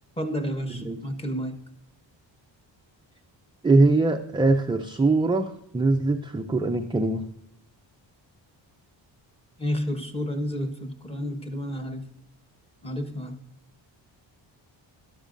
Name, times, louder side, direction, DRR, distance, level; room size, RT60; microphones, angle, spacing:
voice 1, 0.2-1.5 9.6-12.0 12.8-13.3, equal, 15° left, 5 dB, 1.0 m, -30 dB
voice 2, 3.6-7.2, right 3 dB, 10° right, 4 dB, 0.4 m, -22 dB
12.5 x 12.5 x 2.6 m, 0.81 s
cardioid pair, 140°, 46 cm